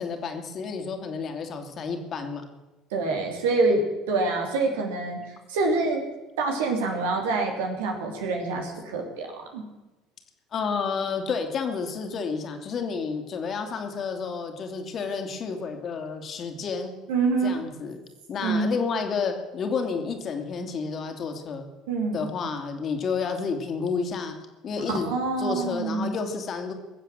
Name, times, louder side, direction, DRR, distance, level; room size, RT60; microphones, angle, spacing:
voice 1, 0.0-2.4 10.5-16.9 17.4-18.0 18.3-21.7 22.1-24.3 24.6-25.1 25.4-26.7, left 5 dB, 45° left, 6 dB, 2.5 m, -30 dB
voice 2, 2.9-3.8 4.1-5.2 5.5-6.0 6.4-9.6 17.1-17.6 18.4-18.7 21.9-22.3 24.9-26.1, right 3 dB, 75° right, 2 dB, 3.1 m, -26 dB
21.0 x 7.4 x 7.6 m, 1.1 s
hypercardioid pair, 70°, 0 cm